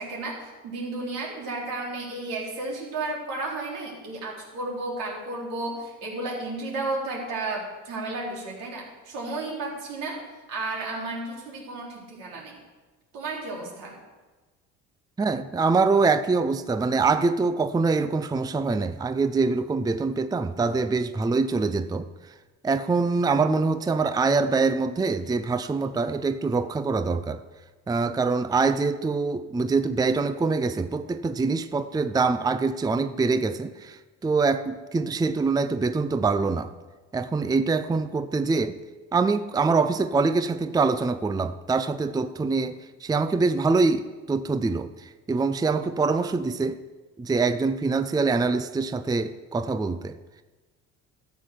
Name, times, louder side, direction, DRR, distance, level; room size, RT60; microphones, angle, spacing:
voice 1, 0.0-10.2 10.5-12.6 13.1-14.0, right 2 dB, 80° right, -3 dB, 3.8 m, -33 dB
voice 2, 15.2-22.1 22.6-27.4 27.9-36.7 37.1-38.8 39.1-46.8 47.2-50.2, right 4 dB, 10° right, 12 dB, 0.5 m, -24 dB
12.5 x 7.6 x 6.4 m, 1.3 s
supercardioid pair, 85°, 33 cm